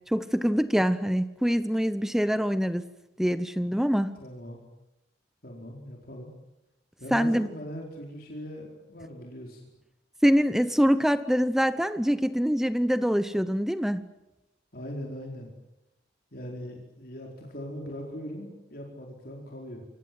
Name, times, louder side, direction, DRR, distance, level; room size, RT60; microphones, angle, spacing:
voice 1, 0.1-2.8 3.2-4.1 7.1-7.5 10.2-14.0, equal, ahead, 13 dB, 0.9 m, -24 dB
voice 2, 4.2-4.6 5.4-6.3 7.0-9.6 14.7-15.5 16.3-19.8, equal, 55° left, 0 dB, 4.7 m, -40 dB
28.5 x 24.0 x 7.8 m, 0.94 s
head